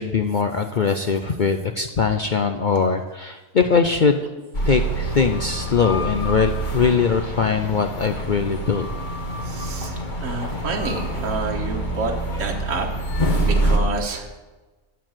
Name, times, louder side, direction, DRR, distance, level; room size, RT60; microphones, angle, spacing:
voice 1, 0.0-4.2 4.6-8.9, left 5 dB, 55° left, 6 dB, 0.5 m, -21 dB
sound 1, 4.5-13.8, right 1 dB, 35° left, 1.5 m, -26 dB
voice 2, 9.4-9.9 10.2-12.9 13.4-14.3, right 3 dB, 65° right, 1 dB, 1.7 m, -28 dB
13.5 x 4.7 x 8.9 m, 1.2 s
omnidirectional pair, 1.5 m